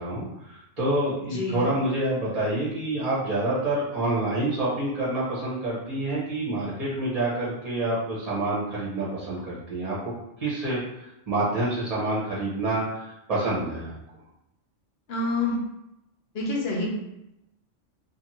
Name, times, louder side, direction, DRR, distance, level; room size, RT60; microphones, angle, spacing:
voice 1, 0.0-10.1 10.4-13.9, right 2 dB, 35° right, -8 dB, 0.8 m, -27 dB
voice 2, 1.3-1.7 15.1-15.6 16.3-16.9, left 2 dB, 60° left, -2 dB, 1.0 m, -27 dB
2.6 x 2.6 x 2.9 m, 0.88 s
omnidirectional pair, 1.3 m